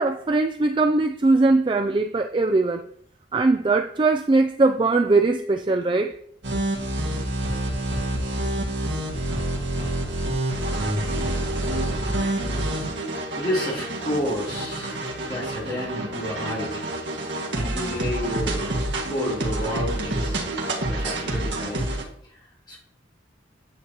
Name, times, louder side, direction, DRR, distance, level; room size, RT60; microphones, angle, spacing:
voice 1, 0.0-2.8 3.3-6.2, right 3 dB, 25° right, 0.3 m, -20 dB
sound 1, 6.4-22.0, right 1 dB, 70° right, 1.9 m, -27 dB
voice 2, 13.3-15.0 15.2-16.8 17.5-18.8 19.1-20.4 20.9-21.9 22.2-22.8, equal, 25° left, 3.1 m, -30 dB
9.4 x 8.2 x 2.9 m
head